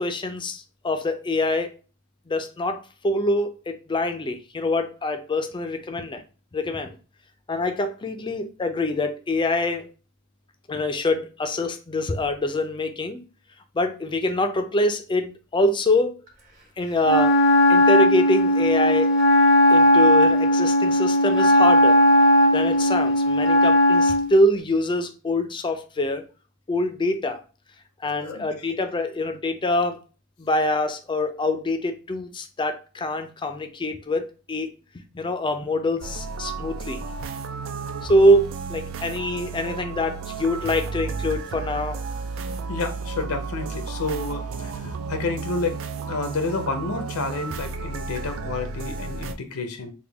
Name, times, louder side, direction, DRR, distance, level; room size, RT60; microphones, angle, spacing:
voice 1, 0.0-1.8 2.3-6.2 6.5-7.0 7.5-9.9 10.7-13.2 13.7-16.1 16.8-17.4 17.7-19.1 19.7-22.0 22.5-26.2 26.7-27.4 28.0-30.0 30.4-34.7 35.1-37.1 38.0-42.0 44.8-44.9, left 1 dB, 20° left, 0.4 m, -24 dB
Wind instrument woodwind instrument, 17.0-24.3, left 1 dB, 40° right, 0.9 m, -17 dB
sound 1, 36.0-49.3, right 4 dB, 65° right, 0.4 m, -33 dB
voice 2, 42.7-45.8 46.0-49.9, left 3 dB, 75° left, 0.6 m, -30 dB
3.5 x 2.2 x 3.4 m
head